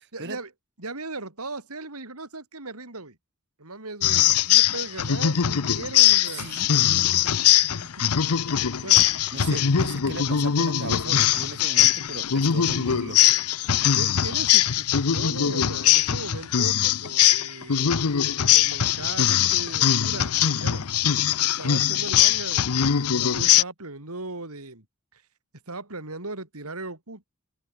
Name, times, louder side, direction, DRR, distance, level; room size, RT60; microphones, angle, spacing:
voice 1, 0.1-0.5 0.8-3.2 3.6-6.5 7.6-8.0 8.8-9.1 9.5-9.6 13.9-18.2 18.5-20.9 21.4-24.8 25.1-25.2 25.7-27.2, right 2 dB, 80° right, 4.3 m, -38 dB
sound 1, 4.0-23.6, left 10 dB, 85° left, 0.8 m, -21 dB
voice 2, 6.3-6.8 9.3-13.2, right 2 dB, 50° right, 3.5 m, -37 dB
open air
head